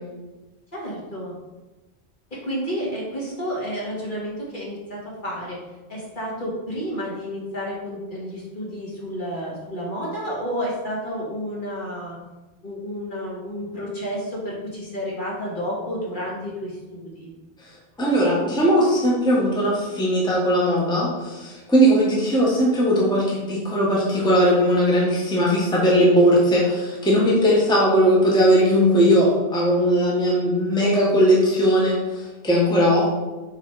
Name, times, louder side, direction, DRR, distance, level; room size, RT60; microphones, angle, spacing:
voice 1, 0.7-1.3 2.3-5.6 5.9-12.2 12.6-17.3, equal, 45° left, -5 dB, 1.8 m, -31 dB
voice 2, 18.0-33.1, equal, 5° left, -5 dB, 1.1 m, -19 dB
5.7 x 3.5 x 4.7 m, 1.2 s
omnidirectional pair, 1.1 m